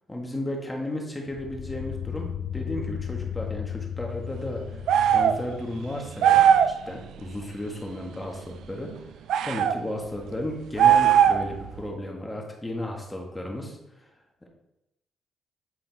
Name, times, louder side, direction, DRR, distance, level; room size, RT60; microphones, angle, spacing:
voice 1, 0.1-4.9 5.1-6.5 6.9-8.9 9.4-13.8 14.4-14.5, left 1 dB, 15° left, 1 dB, 1.6 m, -34 dB
sound 1, 1.3-6.5, left 9 dB, 70° left, 0.4 m, -35 dB
sound 2, 4.9-5.4 6.2-6.8 9.3-9.8 10.8-11.5, right 9 dB, 80° right, 0.3 m, -18 dB
7.6 x 4.1 x 4.0 m, 0.89 s
cardioid pair, 90°, 0 cm